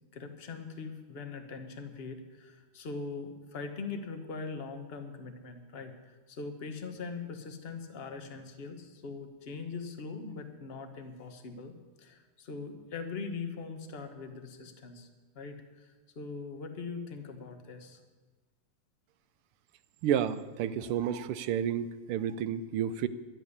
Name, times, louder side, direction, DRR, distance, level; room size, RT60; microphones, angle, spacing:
voice 1, 0.1-15.1 15.3-18.0, left 4 dB, 35° left, 6 dB, 1.1 m, -41 dB
voice 2, 20.0-23.1, right 9 dB, 85° right, 12 dB, 1.5 m, -31 dB
12.0 x 7.9 x 9.7 m, 1.3 s
omnidirectional pair, 2.4 m